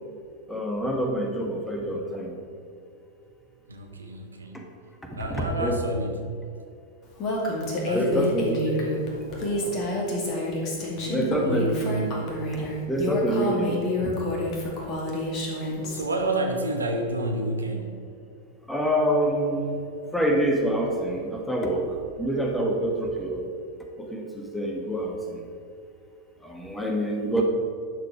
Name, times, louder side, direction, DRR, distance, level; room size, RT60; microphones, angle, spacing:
voice 1, 0.5-2.3 5.3-5.8 7.9-8.9 11.1-11.7 12.5-14.1 18.7-19.8 20.1-23.5 24.0-25.4 26.4-27.4, right 1 dB, 5° left, 0 dB, 1.6 m, -26 dB
voice 2, 3.7-4.7 5.1-6.2 7.8-9.9 10.8-12.4 15.5-18.1, right 1 dB, 75° right, 4 dB, 1.1 m, -31 dB
Female speech woman speaking, 7.2-16.0, left 2 dB, 35° left, 2.3 m, -28 dB
11.0 x 6.8 x 5.0 m, 2.5 s
figure-of-eight pair, 90°, 0 cm